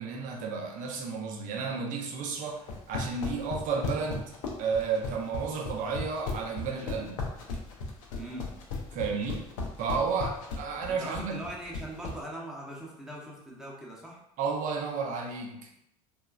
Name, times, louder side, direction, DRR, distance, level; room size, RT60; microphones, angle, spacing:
voice 1, 0.0-4.3 4.6-7.2 8.9-9.4 9.8-11.4 14.4-15.7, right 5 dB, 45° right, 1 dB, 0.6 m, -32 dB
sound 1, 2.6-12.2, left 4 dB, 60° left, 0.6 m, -35 dB
voice 2, 8.2-8.5 10.9-14.2, right 1 dB, 5° right, -4 dB, 0.8 m, -41 dB
2.9 x 2.4 x 2.3 m, 0.79 s
figure-of-eight pair, 65°, 19 cm